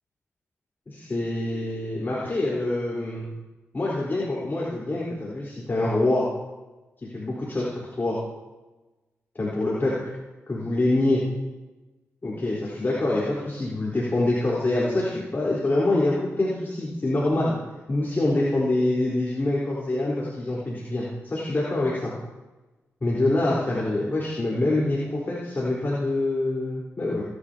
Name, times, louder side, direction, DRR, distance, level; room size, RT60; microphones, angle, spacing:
voice 1, 0.9-3.3 3.7-6.2 7.1-8.2 9.3-10.1 10.5-11.2 12.2-17.6 17.9-22.1 23.0-27.2, left 2 dB, 40° left, -6 dB, 4.2 m, -25 dB
23.5 x 11.0 x 2.9 m, 1.1 s
cardioid pair, 60°, 6 cm